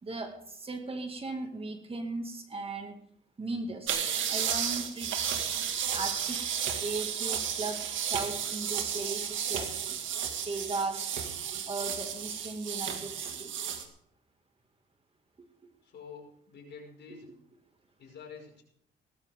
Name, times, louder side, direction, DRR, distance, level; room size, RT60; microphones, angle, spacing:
voice 1, 0.0-3.0 3.4-4.0 4.3-5.1 5.9-6.4 6.8-9.8 10.5-11.1 11.7-13.5 17.1-17.3, right 3 dB, 30° right, 5 dB, 2.1 m, -37 dB
sound 1, 3.9-13.8, right 8 dB, 75° right, 2.1 m, -33 dB
voice 2, 15.8-17.4 18.0-18.6, left 5 dB, 60° left, 0 dB, 5.3 m, -48 dB
18.0 x 13.5 x 3.6 m, 0.68 s
cardioid pair, 90°, 20 cm